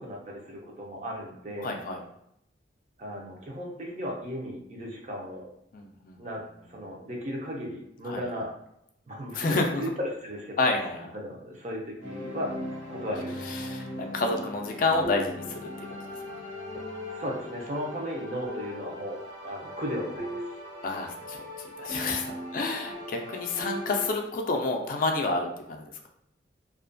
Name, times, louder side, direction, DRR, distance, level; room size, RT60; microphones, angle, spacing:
voice 1, 0.0-1.8 3.0-5.5 6.2-6.4 6.7-8.5 9.1-10.6 11.1-12.6 12.9-13.7 17.1-20.5, equal, 40° right, -1 dB, 0.5 m, -36 dB
voice 2, 1.6-2.0 5.7-6.2 8.0-8.2 9.3-9.8 10.6-11.1 13.5-13.9 14.1-15.9 20.8-21.5 21.8-25.8, left 3 dB, 50° left, 2 dB, 0.3 m, -29 dB
sound 1, 12.0-24.1, left 1 dB, 80° right, 1.0 m, -39 dB
2.4 x 2.1 x 2.5 m, 0.77 s
head